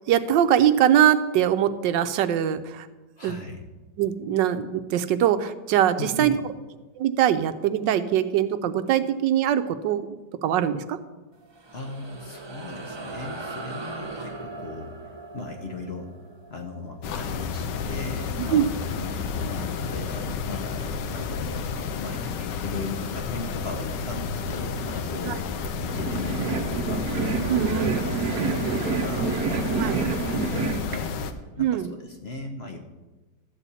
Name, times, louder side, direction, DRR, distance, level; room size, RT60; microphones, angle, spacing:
voice 1, 0.1-2.9 3.2-3.4 4.0-6.4 7.0-10.0 10.4-11.0 18.5-18.6 25.2-25.3 27.5-28.0 29.7-30.0 31.6-31.9, right 10 dB, 85° right, 10 dB, 1.3 m, -22 dB
voice 2, 3.2-3.6 6.0-6.4 11.7-16.2 16.5-25.5 25.8-27.1 27.4-29.7 30.0-31.2 31.6-32.8, left 3 dB, 45° left, 3 dB, 0.9 m, -38 dB
sound 1, 11.3-18.1, right 3 dB, 35° right, 0.4 m, -40 dB
sound 2, 17.0-31.3, left 5 dB, 80° left, 1.4 m, -31 dB
sound 3, 25.8-31.0, right 4 dB, 60° right, 1.1 m, -27 dB
12.5 x 4.2 x 8.2 m, 1.2 s
omnidirectional pair, 1.9 m